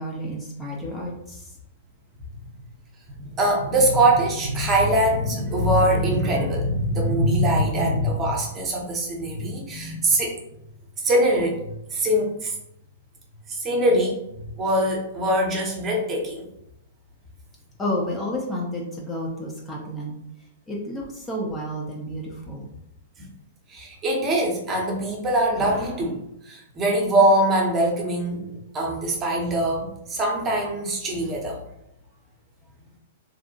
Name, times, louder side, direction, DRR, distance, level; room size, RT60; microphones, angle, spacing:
voice 1, 0.0-1.5 17.8-20.1 20.7-22.7, equal, 15° left, -3 dB, 0.5 m, -31 dB
voice 2, 3.2-10.4 11.0-12.6 13.5-14.2 14.6-16.5 23.7-31.6, right 1 dB, 25° right, -1 dB, 0.8 m, -22 dB
2.6 x 2.0 x 2.8 m, 0.80 s
hypercardioid pair, 110°, 0 cm